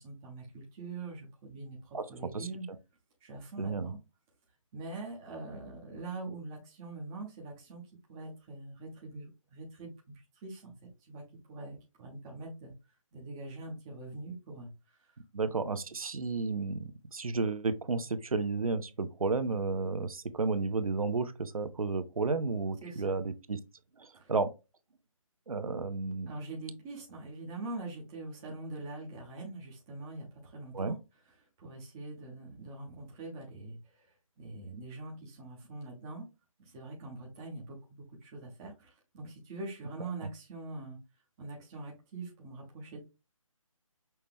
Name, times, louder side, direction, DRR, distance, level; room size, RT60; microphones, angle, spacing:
voice 1, 0.0-2.7 3.2-4.0 4.7-10.7 11.1-11.2 11.5-12.7 13.1-14.7 15.0-15.1 15.4-15.6 22.8-23.2 24.1-24.3 26.3-31.0 31.4-34.1 34.4-36.3 36.7-41.0 41.4-43.0, right 2 dB, 5° right, 0.4 m, -43 dB
voice 2, 3.6-3.9 15.3-23.6 24.0-24.5 25.5-26.3 30.7-31.0 40.2-40.3, right 4 dB, 90° right, 0.8 m, -32 dB
5.7 x 2.2 x 3.4 m
figure-of-eight pair, 160°, 18 cm